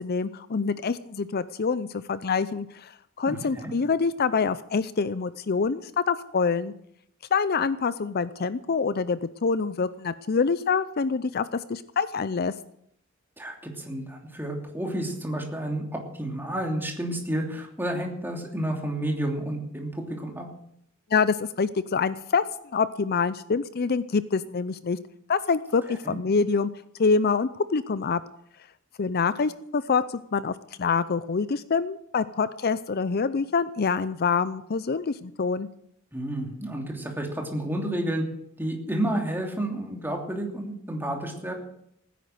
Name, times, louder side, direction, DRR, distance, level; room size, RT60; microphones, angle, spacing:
voice 1, 0.0-2.9 3.2-6.7 7.3-12.5 21.1-22.4 22.7-25.0 25.3-26.7 27.0-28.2 29.0-30.0 30.3-35.7, left 5 dB, 50° left, 15 dB, 0.5 m, -26 dB
voice 2, 3.3-3.7 13.4-20.5 26.0-26.2 36.1-38.2 38.6-41.5, right 1 dB, 10° right, 1 dB, 2.9 m, -30 dB
17.0 x 10.0 x 7.8 m, 0.72 s
head